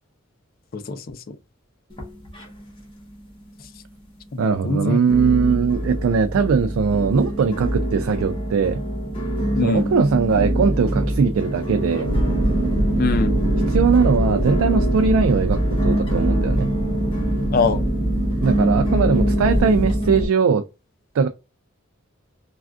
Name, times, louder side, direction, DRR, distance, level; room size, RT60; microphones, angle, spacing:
voice 1, 0.7-1.2 4.3-5.0 9.6-9.9 13.0-13.4 17.5-17.8, left 3 dB, 45° left, 0.4 m, -23 dB
sound 1, 1.9-2.9 3.1-3.8 4.3-4.4 5.1-20.3, right 1 dB, 25° left, 1.2 m, -24 dB
voice 2, 4.4-8.8 9.6-12.1 13.7-16.7 18.4-20.6 21.1-21.3, right 5 dB, 80° right, 0.3 m, -20 dB
sound 2, 12.1-20.0, right 1 dB, 55° right, 0.7 m, -26 dB
3.2 x 2.4 x 2.4 m
head